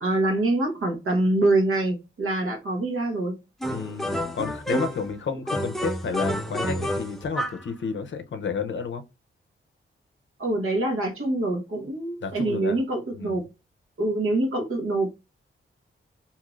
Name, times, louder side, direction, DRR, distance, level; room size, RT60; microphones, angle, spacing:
voice 1, 0.0-3.4 10.4-13.4 14.0-15.1, right 2 dB, 80° right, 1.1 m, -25 dB
sound 1, 3.6-5.1 5.5-7.7, equal, ahead, 0.5 m, -29 dB
voice 2, 3.7-9.0 12.2-12.8 13.1-13.4, left 5 dB, 60° left, 0.5 m, -31 dB
2.8 x 2.4 x 3.0 m
wide cardioid pair, 160°, 21 cm